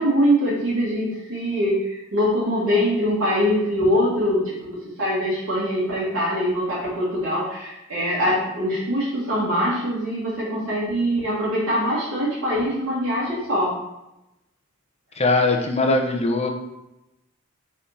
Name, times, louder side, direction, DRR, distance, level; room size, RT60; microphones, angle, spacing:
voice 1, 0.0-13.7, equal, 70° right, -8 dB, 2.0 m, -23 dB
voice 2, 15.2-16.5, left 2 dB, 30° left, 2 dB, 1.0 m, -20 dB
5.7 x 4.3 x 5.8 m, 0.92 s
head